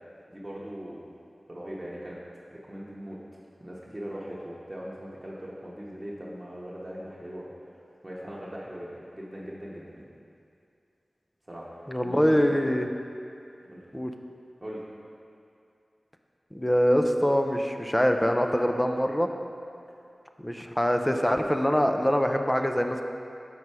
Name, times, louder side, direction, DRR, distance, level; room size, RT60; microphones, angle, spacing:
voice 1, 0.3-1.1 1.5-2.2 2.5-3.2 3.6-7.5 8.0-10.1 11.5-12.5 13.6-13.8 14.6-14.8, equal, 25° right, -7 dB, 0.9 m, -40 dB
voice 2, 11.9-12.9 13.9-14.1 16.5-19.3 20.4-23.0, equal, 10° left, 5 dB, 0.4 m, -24 dB
6.2 x 5.5 x 4.7 m, 2.5 s
wide cardioid pair, 65°, 0 cm